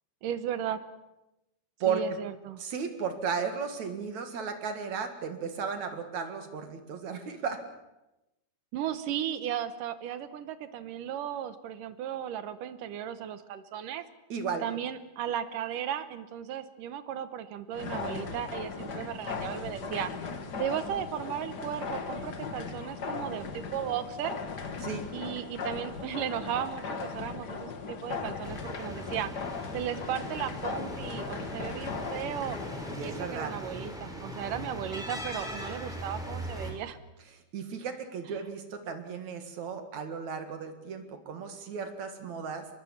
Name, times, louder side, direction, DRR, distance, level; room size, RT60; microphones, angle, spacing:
voice 1, 0.2-0.8 1.9-2.6 8.7-14.0 14.6-20.1 20.6-24.4 25.1-29.3 29.7-32.6 33.0-37.0 38.3-38.4, right 10 dB, 70° right, 12 dB, 2.3 m, -35 dB
voice 2, 2.6-7.6 14.3-14.6 24.8-25.0 32.9-33.5 37.5-42.7, right 6 dB, 55° right, 7 dB, 2.9 m, -34 dB
sound 1, 17.7-33.0, left 5 dB, 50° left, 1.2 m, -38 dB
sound 2, 28.4-36.7, equal, ahead, 4.0 m, -40 dB
24.0 x 21.5 x 7.2 m, 0.96 s
omnidirectional pair, 4.4 m